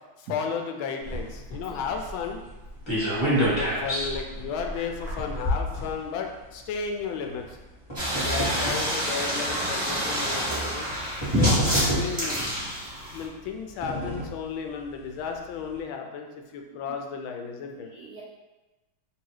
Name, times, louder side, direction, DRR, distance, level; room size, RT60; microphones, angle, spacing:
voice 1, 0.2-2.4 3.3-7.6 8.2-10.9 11.3-11.5 11.9-12.5 13.1-16.3 16.5-17.9, left 6 dB, 80° left, 3 dB, 1.3 m, -33 dB
sound 1, 1.0-6.5 7.3-8.9 9.7-9.8 10.8-10.9 11.2-12.4 13.3-14.4 14.9-15.0 15.2-15.3, equal, 15° left, 1.2 m, -29 dB
sound 2, 8.0-13.2, equal, 15° right, 1.0 m, -27 dB
voice 2, 8.2-8.9 17.9-18.2, right 3 dB, 75° right, -5 dB, 0.8 m, -39 dB
3.3 x 2.8 x 4.6 m, 1.1 s
omnidirectional pair, 2.2 m